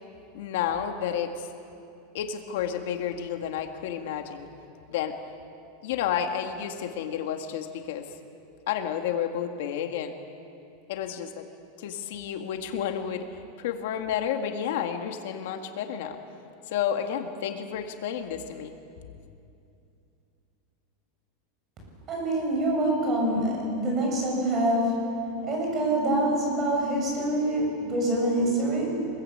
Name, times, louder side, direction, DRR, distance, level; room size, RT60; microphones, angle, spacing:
voice 1, 0.3-1.5 2.1-4.5 4.9-5.1 5.8-8.1 8.7-10.1 10.9-11.4 11.8-13.3 13.6-16.2 16.7-18.7, left 9 dB, 65° left, 5 dB, 1.9 m, -31 dB
voice 2, 22.1-25.0 25.4-29.1, right 1 dB, 25° right, -1 dB, 7.9 m, -25 dB
25.0 x 22.0 x 8.6 m, 2.6 s
supercardioid pair, 165°, 0 cm